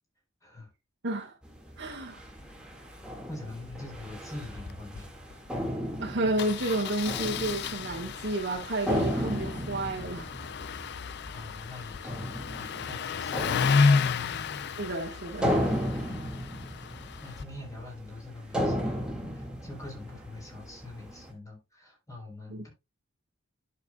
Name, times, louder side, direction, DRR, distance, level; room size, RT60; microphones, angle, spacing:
voice 1, 1.0-1.3 1.8-2.2 6.0-10.3 14.8-15.6 16.0-16.1 22.5-22.6, right 1 dB, 65° right, 1.6 m, -31 dB
sound 1, 1.4-21.3, equal, 5° right, 2.0 m, -35 dB
voice 2, 3.3-5.1 11.3-13.9 14.3-14.5 17.2-22.7, left 2 dB, 15° left, 4.1 m, -44 dB
Engine starting, 4.4-4.7 5.0-5.1 5.3-5.5 6.4-17.4, left 5 dB, 60° left, 0.5 m, -31 dB
11.0 x 6.5 x 2.3 m
head